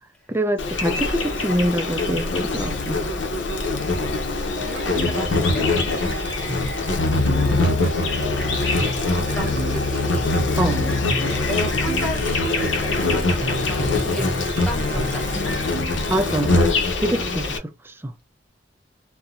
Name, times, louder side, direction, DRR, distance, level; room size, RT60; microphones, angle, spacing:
voice 1, 0.3-3.0 10.6-10.8 16.1-16.7 17.0-17.5, right 1 dB, 10° right, 0.3 m, -24 dB
Insect, 0.6-17.6, left 2 dB, 80° left, 0.7 m, -23 dB
voice 2, 4.0-7.0 7.3-7.7 8.0-15.5, right 1 dB, 5° left, 0.9 m, -35 dB
sound 1, 4.6-16.9, right 1 dB, 65° right, 0.8 m, -34 dB
2.5 x 2.1 x 2.8 m
head